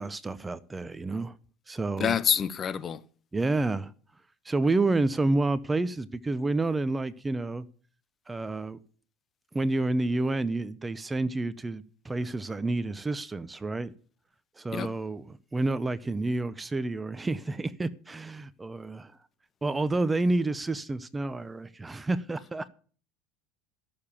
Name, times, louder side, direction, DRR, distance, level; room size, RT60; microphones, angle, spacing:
voice 1, 0.0-1.4 1.7-2.2 3.3-3.9 4.4-7.7 8.3-8.8 9.5-13.9 14.6-19.1 19.6-22.7, right 2 dB, 15° right, 0.5 m, -29 dB
voice 2, 2.0-3.0 14.7-14.9, left 8 dB, 30° left, 0.7 m, -27 dB
13.5 x 6.8 x 7.2 m
supercardioid pair, 125°, 0 cm